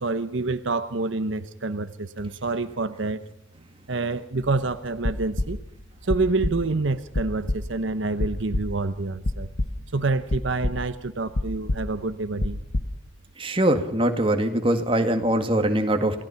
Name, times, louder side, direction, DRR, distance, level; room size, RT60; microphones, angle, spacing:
voice 1, 0.0-3.3 3.9-5.6 6.0-9.5 9.9-12.6, right 3 dB, 70° right, 11 dB, 0.9 m, -27 dB
sound 1, 4.4-4.6 4.9-5.8 6.1-6.7 7.1-7.8 8.2-9.0 9.2-9.9 10.3-11.1 11.4-12.9, left 1 dB, 60° left, 1.1 m, -28 dB
voice 2, 13.4-16.2, right 1 dB, 25° right, 6 dB, 1.9 m, -22 dB
28.0 x 17.5 x 5.8 m, 0.81 s
head